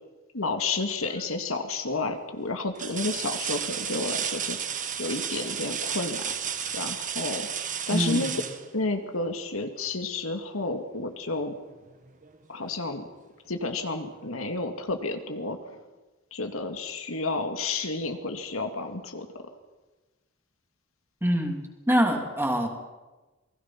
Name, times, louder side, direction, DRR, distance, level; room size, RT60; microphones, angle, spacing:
voice 1, 0.3-4.6 5.0-6.3 6.7-7.5 7.9-8.3 8.7-11.6 12.5-13.1 13.5-15.8 16.3-19.3, left 3 dB, 70° left, 5 dB, 2.3 m, -31 dB
sound 1, 1.0-1.5 2.0-2.1 2.7-9.4 11.2-11.3 11.8-12.8 14.2-14.3, right 8 dB, 40° right, 1.6 m, -33 dB
voice 2, 7.9-8.4 21.2-21.6 21.9-22.7, equal, 10° right, 2 dB, 3.1 m, -24 dB
28.0 x 21.0 x 6.0 m, 1.2 s
head